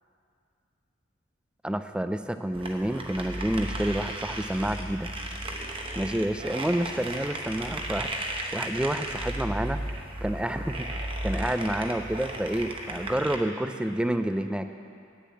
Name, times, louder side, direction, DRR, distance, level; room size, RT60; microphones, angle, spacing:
voice 1, 1.6-5.1 5.6-5.7 6.0-14.7, right 1 dB, 5° right, 9 dB, 0.3 m, -29 dB
sound 1, 2.5-13.4, right 1 dB, 25° right, 0.9 m, -35 dB
9.6 x 6.9 x 8.4 m, 2.4 s
head